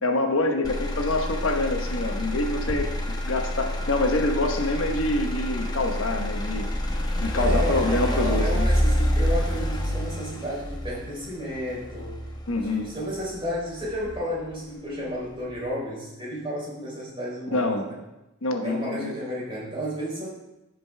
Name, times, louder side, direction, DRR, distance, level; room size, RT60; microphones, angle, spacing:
voice 1, 0.0-2.9 3.2-6.7 7.2-8.7 12.5-12.9 17.5-17.9 18.4-19.1, left 2 dB, 80° left, 4 dB, 1.1 m, -26 dB
Motor vehicle (road), 0.6-14.7 15.1-15.6, equal, 20° left, 0.9 m, -28 dB
voice 2, 7.4-12.2 12.6-18.0 18.6-20.3, equal, 25° right, -5 dB, 3.5 m, -32 dB
15.0 x 5.3 x 3.4 m, 0.96 s
head